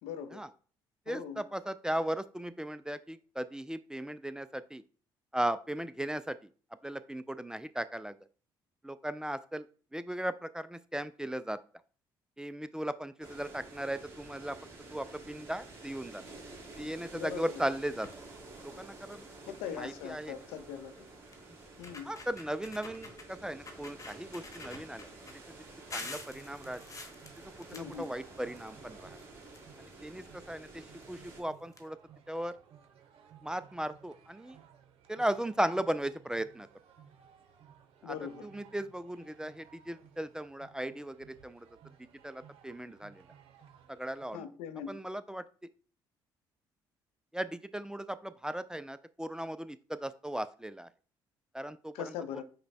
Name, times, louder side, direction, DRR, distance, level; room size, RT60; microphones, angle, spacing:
voice 1, 0.0-0.4 1.1-1.4 17.1-17.5 19.5-20.9 21.8-22.1 27.7-28.1 38.0-38.5 44.3-45.0 51.9-52.4, left 8 dB, 80° left, 0.5 m, -41 dB
voice 2, 1.1-4.8 5.3-6.5 6.8-8.2 8.8-9.7 9.9-11.6 12.4-14.6 14.9-16.3 16.8-18.1 18.6-19.2 19.7-20.4 22.1-25.1 25.9-26.8 27.7-29.2 29.8-32.0 32.3-32.6 33.4-34.6 35.1-36.7 38.0-38.2 38.4-41.7 42.2-43.2 43.9-44.5 44.9-45.4 47.3-50.9 51.5-52.1, right 1 dB, 5° right, 0.3 m, -37 dB
sound 1, 13.2-31.4, right 2 dB, 25° right, 2.2 m, -51 dB
sound 2, 17.9-18.3 18.8-18.9 19.1-19.4 20.6-20.7 21.3-21.4 21.7-23.3 23.7-25.3 25.9-28.7 29.0-30.1 31.0-31.1 31.4-31.5 31.7-31.8, left 3 dB, 30° left, 1.1 m, -46 dB
sound 3, 25.5-44.3, right 8 dB, 70° right, 0.7 m, -59 dB
5.2 x 2.2 x 4.1 m
supercardioid pair, 65°, 10 cm